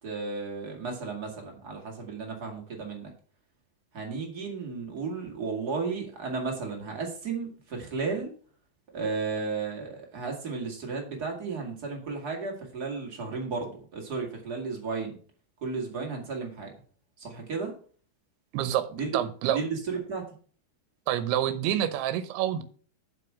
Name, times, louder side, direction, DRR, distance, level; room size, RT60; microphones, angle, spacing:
voice 1, 0.0-3.1 3.9-8.3 8.9-15.2 15.6-16.7 17.2-17.7 18.9-19.1 19.4-20.2, right 4 dB, 30° right, 1 dB, 1.9 m, -34 dB
voice 2, 18.5-18.9 19.1-19.6 21.1-22.6, right 11 dB, 80° right, 11 dB, 2.8 m, -27 dB
7.8 x 6.0 x 6.2 m, 0.43 s
omnidirectional pair, 4.7 m